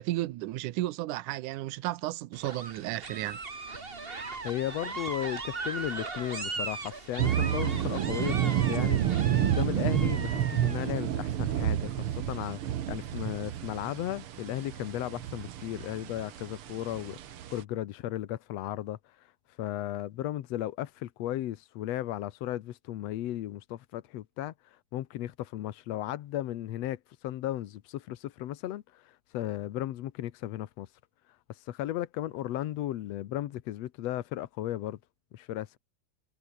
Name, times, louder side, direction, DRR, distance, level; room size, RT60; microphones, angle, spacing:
voice 1, 0.0-3.4, right 17 dB, 70° right, 2.1 m, -33 dB
sound 1, 2.3-10.9, right 3 dB, 25° right, 1.4 m, -38 dB
voice 2, 4.4-19.3 19.6-30.9 31.5-35.0 35.3-35.8, left 13 dB, 75° left, 1.5 m, -35 dB
sound 2, 7.2-17.6, right 11 dB, 85° right, 1.2 m, -30 dB
omnidirectional pair, 4.3 m